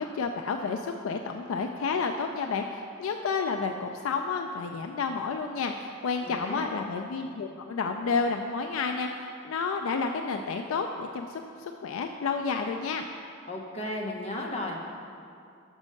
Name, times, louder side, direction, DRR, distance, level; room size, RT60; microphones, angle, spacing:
voice 1, 0.0-13.0, left 5 dB, 85° left, 5 dB, 0.4 m, -30 dB
voice 2, 6.2-6.7 13.5-14.8, left 1 dB, 30° left, -1 dB, 0.9 m, -34 dB
6.2 x 5.4 x 6.4 m, 2.4 s
head